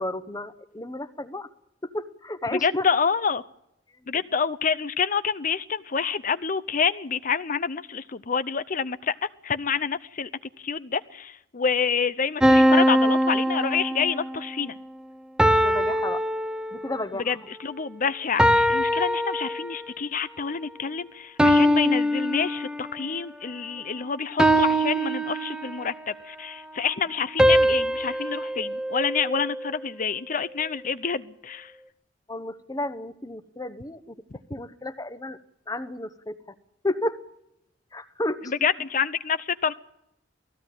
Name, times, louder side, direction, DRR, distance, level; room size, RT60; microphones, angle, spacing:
voice 1, 0.0-1.5 1.8-2.9 4.0-4.2 15.6-16.2 16.7-17.4 32.3-34.1 34.5-35.4 35.7-36.4 36.8-37.2 37.9-38.5, left 1 dB, 20° left, 11 dB, 1.0 m, -32 dB
voice 2, 2.5-3.4 4.1-10.3 10.6-14.8 17.2-31.7 38.4-39.7, left 6 dB, 45° left, 14 dB, 0.7 m, -27 dB
sound 1, 12.4-14.3 15.4-17.0 18.4-20.0 21.4-23.1 24.4-26.0 27.4-29.7, equal, 5° right, 0.9 m, -22 dB
19.0 x 15.5 x 9.0 m, 0.82 s
head